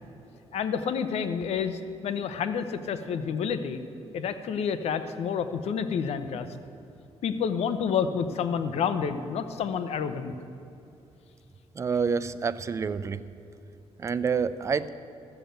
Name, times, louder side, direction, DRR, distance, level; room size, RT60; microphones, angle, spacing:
voice 1, 0.5-3.8 4.1-6.5 7.2-10.3, left 7 dB, 75° left, 10 dB, 0.8 m, -29 dB
voice 2, 11.8-13.2 14.0-14.9, right 5 dB, 30° right, 13 dB, 0.4 m, -28 dB
13.0 x 6.9 x 9.0 m, 2.7 s
cardioid pair, 145°, 11 cm